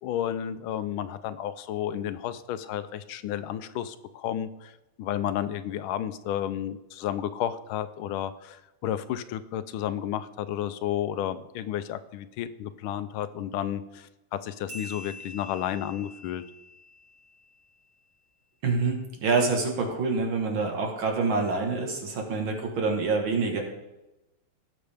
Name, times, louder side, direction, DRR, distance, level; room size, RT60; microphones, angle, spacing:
voice 1, 0.0-4.7 5.0-16.4, left 10 dB, 80° left, 12 dB, 1.4 m, -32 dB
sound 1, 14.7-17.7, left 2 dB, 45° right, 3.1 m, -45 dB
voice 2, 18.6-23.6, right 4 dB, 70° right, 2 dB, 2.2 m, -26 dB
17.5 x 6.3 x 3.4 m, 0.97 s
omnidirectional pair, 2.3 m